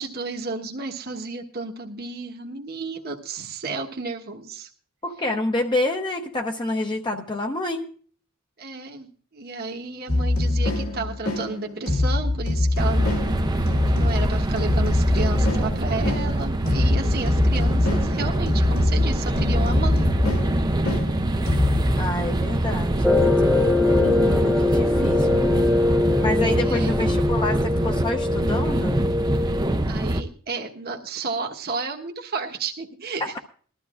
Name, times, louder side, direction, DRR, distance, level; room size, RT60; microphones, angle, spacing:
voice 1, 0.0-4.7 8.6-20.1 24.6-25.6 26.6-27.1 29.9-33.4, right 4 dB, 45° right, 1 dB, 1.2 m, -32 dB
voice 2, 5.0-7.9 22.0-23.2 23.9-25.4 26.2-29.0 33.2-33.4, left 2 dB, 20° left, 3 dB, 0.8 m, -28 dB
sound 1, 10.1-21.9, left 2 dB, 75° left, 2.6 m, -24 dB
sound 2, 12.8-30.2, right 1 dB, 20° right, 0.6 m, -24 dB
sound 3, 23.0-29.8, left 2 dB, ahead, 1.0 m, -22 dB
21.0 x 12.5 x 2.5 m, 0.43 s
head